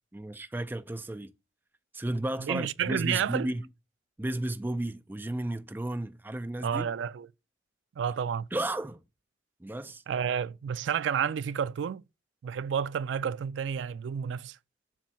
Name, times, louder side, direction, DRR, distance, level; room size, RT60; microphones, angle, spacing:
voice 1, 0.1-1.3 1.9-3.7 4.2-6.9 8.5-9.0 9.6-10.0, right 1 dB, 10° right, 0.4 m, -33 dB
voice 2, 2.4-3.5 6.6-7.3 8.0-8.5 10.1-12.0 12.4-14.6, right 7 dB, 85° right, 0.3 m, -30 dB
7.3 x 2.7 x 5.3 m
head